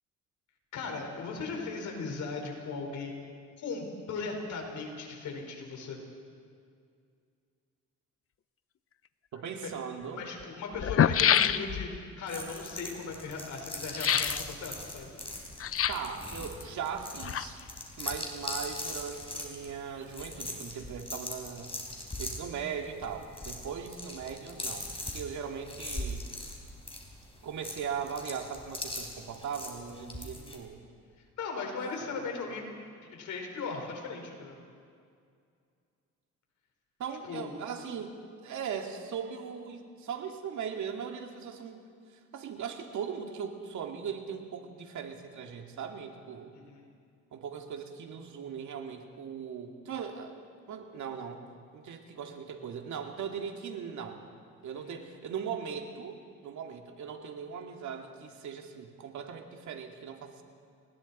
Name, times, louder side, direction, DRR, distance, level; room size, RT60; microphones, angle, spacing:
voice 1, 0.7-3.2 3.6-6.0 9.6-9.7 10.1-15.1 30.2-30.5 31.4-32.6 33.1-34.6 37.2-37.5 46.5-46.9 54.7-55.0, left 4 dB, 70° left, 2 dB, 4.8 m, -38 dB
voice 2, 9.3-10.2 15.9-17.6 18.0-21.7 22.2-26.3 27.4-30.8 32.0-32.2 37.0-38.2 38.4-41.8 42.1-46.5 47.3-50.4 50.7-51.5 51.7-54.2 54.6-60.4, right 7 dB, 70° right, 3 dB, 2.4 m, -39 dB
sound 1, 9.4-9.5 10.4-10.5 10.7-12.0 13.9-14.4 15.6-16.2 17.0-17.8 18.1-18.2, left 9 dB, 50° left, 0.7 m, -26 dB
sound 2, 12.3-30.6, left 1 dB, 20° left, 4.1 m, -41 dB
30.0 x 20.5 x 4.3 m, 2.3 s
cardioid pair, 90°, 30 cm